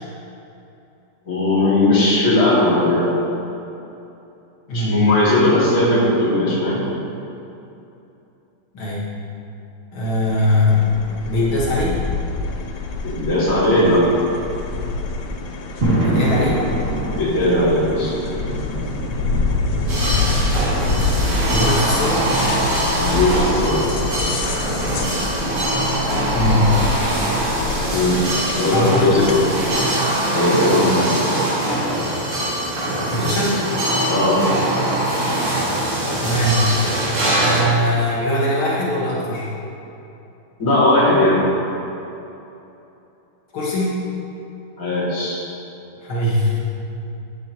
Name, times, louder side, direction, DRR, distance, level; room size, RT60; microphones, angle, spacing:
voice 1, 1.3-3.1 4.7-6.8 13.0-14.1 17.2-18.1 23.0-23.8 27.9-28.2 28.5-29.4 30.3-31.4 34.1-34.4 40.6-41.4 44.8-45.4, left 1 dB, 40° left, -7 dB, 2.9 m, -18 dB
voice 2, 4.7-5.0 8.7-9.1 9.9-12.1 16.0-16.6 21.5-22.3 26.3-26.8 28.7-29.3 33.1-33.7 36.2-36.7 37.4-39.5 43.5-44.0 46.0-46.6, left 1 dB, 80° left, -6 dB, 2.4 m, -21 dB
sound 1, 10.0-29.7, left 3 dB, 65° left, 1.2 m, -26 dB
sound 2, 15.8-28.7, right 1 dB, 35° right, 2.5 m, -29 dB
sound 3, 19.9-37.6, right 1 dB, 75° right, 3.1 m, -22 dB
12.5 x 10.5 x 3.0 m, 2.9 s
omnidirectional pair, 2.2 m